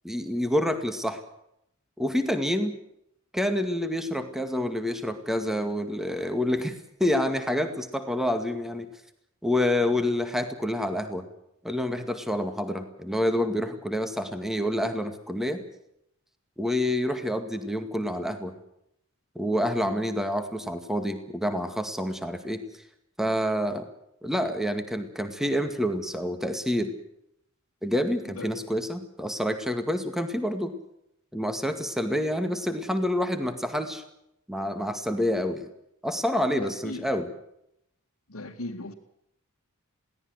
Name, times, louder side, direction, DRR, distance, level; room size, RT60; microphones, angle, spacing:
voice 1, 0.0-1.2 2.0-2.8 3.3-8.9 9.4-11.3 11.6-15.6 16.6-18.5 19.4-22.6 23.2-23.9 24.2-26.9 27.8-30.7 31.3-34.0 34.5-35.7 36.0-37.3, left 1 dB, ahead, 8 dB, 2.1 m, -28 dB
voice 2, 36.6-37.1 38.3-38.9, left 2 dB, 90° left, -4 dB, 2.3 m, -37 dB
22.5 x 17.5 x 8.0 m, 0.76 s
head